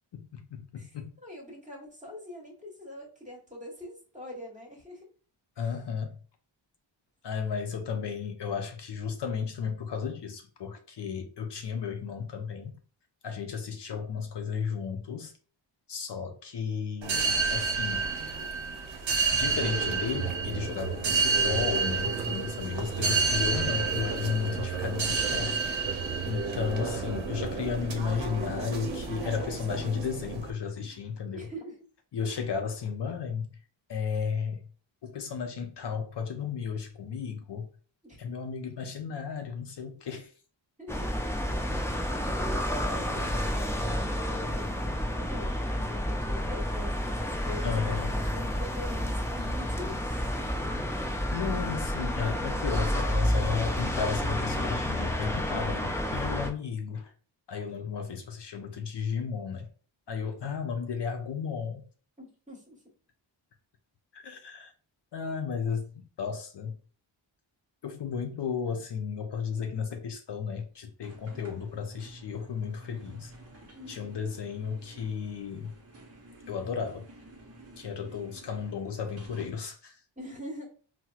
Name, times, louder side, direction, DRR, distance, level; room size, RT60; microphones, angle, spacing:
voice 1, 0.1-1.1 5.6-6.2 7.2-12.8 13.2-15.3 15.9-18.1 19.3-25.7 26.2-31.5 32.1-33.6 33.9-34.6 35.0-37.7 38.2-40.3 41.5-41.6 47.6-48.1 51.3-57.1 57.5-59.7 60.1-61.8 64.1-64.7 65.1-66.8 67.8-73.3 73.9-75.7 76.5-77.1 77.8-80.0, left 6 dB, 60° left, 0.6 m, -34 dB
voice 2, 0.7-5.1 5.6-5.7 30.8-31.8 38.0-38.2 40.8-41.1 42.1-50.3 62.2-62.8 73.7-74.2 80.2-80.7, left 1 dB, 15° right, 1.2 m, -44 dB
sound 1, 17.0-30.5, right 4 dB, 75° right, 0.7 m, -30 dB
sound 2, 40.9-56.5, equal, 5° left, 0.4 m, -30 dB
sound 3, 71.0-79.6, right 1 dB, 30° right, 0.7 m, -51 dB
4.3 x 2.1 x 2.3 m
wide cardioid pair, 100°, 46 cm